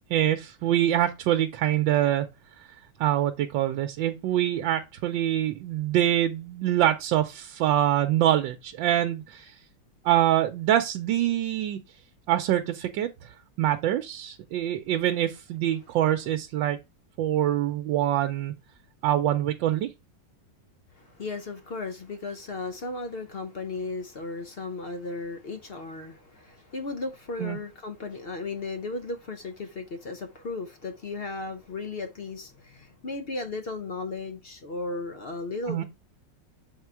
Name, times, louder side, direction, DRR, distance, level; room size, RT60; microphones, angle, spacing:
voice 1, 0.1-2.3 3.0-9.6 10.0-11.8 12.3-13.1 13.6-16.8 17.2-18.5 19.0-19.9 27.4-27.6 35.7-35.8, right 12 dB, 85° right, 1.3 m, -25 dB
voice 2, 15.6-16.3 20.9-35.8, left 3 dB, 60° left, 0.6 m, -36 dB
6.9 x 3.7 x 4.5 m
omnidirectional pair, 2.0 m